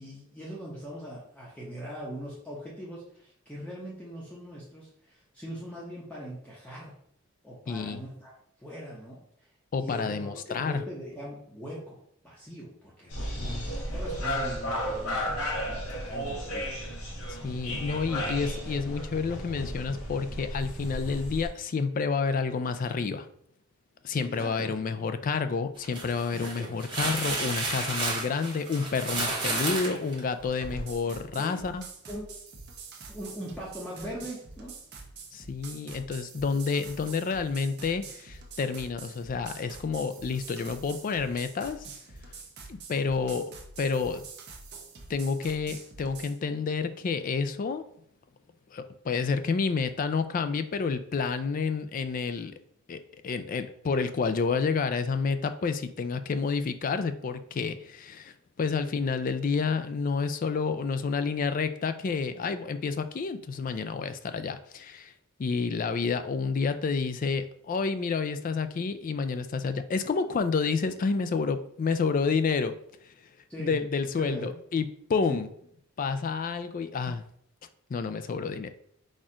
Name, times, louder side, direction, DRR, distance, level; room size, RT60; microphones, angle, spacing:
voice 1, 0.0-6.9 7.4-8.3 8.6-9.2 9.8-12.0 12.2-15.4 15.7-16.7 24.3-24.7 26.3-26.7 31.4-31.6 32.1-32.3 33.1-34.7 73.5-73.8 74.2-74.5 75.3-75.4, equal, 5° left, -6 dB, 0.8 m, -41 dB
voice 2, 7.7-8.0 9.7-10.8 13.4-13.7 17.3-23.3 24.0-31.8 35.3-41.9 42.7-43.5 43.8-44.2 45.1-47.8 48.7-52.5 52.9-65.1 65.4-72.8 73.0-73.3 73.6-75.5 76.0-77.2 77.9-78.7, left 5 dB, 40° left, 10 dB, 0.3 m, -29 dB
sound 1, 13.1-21.5, equal, 75° left, 1.1 m, -34 dB
sound 2, 25.8-30.9, right 2 dB, 20° right, 1.1 m, -32 dB
sound 3, 30.5-46.4, right 4 dB, 50° right, 0.8 m, -46 dB
4.3 x 2.4 x 4.8 m, 0.67 s
head